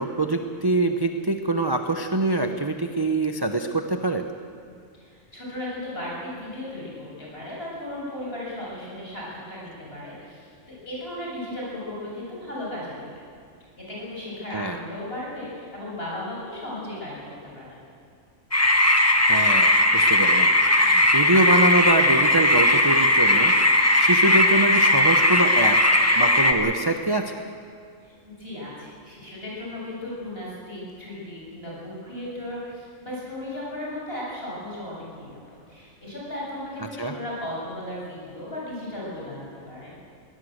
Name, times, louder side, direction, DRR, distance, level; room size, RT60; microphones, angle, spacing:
voice 1, 0.0-4.3 14.5-14.8 19.3-25.8 26.2-27.4 37.0-37.1, right 2 dB, 20° right, 5 dB, 0.8 m, -24 dB
voice 2, 4.9-13.2 13.8-17.8 28.0-39.9, left 1 dB, 45° left, -5 dB, 8.0 m, -36 dB
sound 1, 18.5-26.5, left 1 dB, 10° left, 1.4 m, -18 dB
22.5 x 18.0 x 8.0 m, 2.2 s
omnidirectional pair, 1.4 m